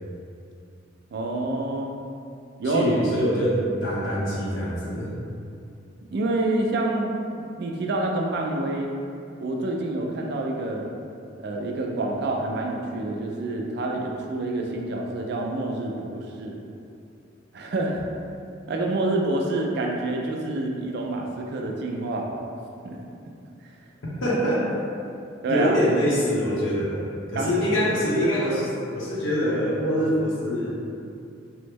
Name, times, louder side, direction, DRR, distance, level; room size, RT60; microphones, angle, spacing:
voice 1, 1.1-1.9 2.6-2.9 6.1-8.9 9.4-10.9 11.4-16.6 17.5-18.0 18.7-22.3 22.8-23.0 25.4-25.8 27.4-27.7, right 2 dB, 55° right, 0 dB, 0.3 m, -27 dB
voice 2, 2.6-5.1 24.2-24.7 25.5-27.0 27.3-30.8, equal, 90° left, -6 dB, 0.8 m, -24 dB
3.0 x 2.0 x 3.4 m, 2.5 s
head